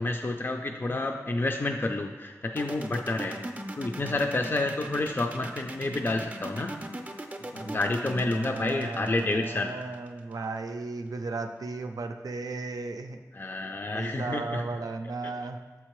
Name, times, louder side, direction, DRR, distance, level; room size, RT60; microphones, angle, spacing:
voice 1, 0.0-3.4 3.8-6.8 7.5-9.7 13.3-14.6, left 2 dB, 35° left, 4 dB, 0.3 m, -29 dB
sound 1, 2.6-10.3, right 1 dB, 25° right, 0.5 m, -39 dB
voice 2, 7.4-7.8 8.2-13.2 13.9-15.6, right 3 dB, 90° right, 6 dB, 0.4 m, -35 dB
7.2 x 4.4 x 3.1 m, 1.3 s
wide cardioid pair, 85°, 6 cm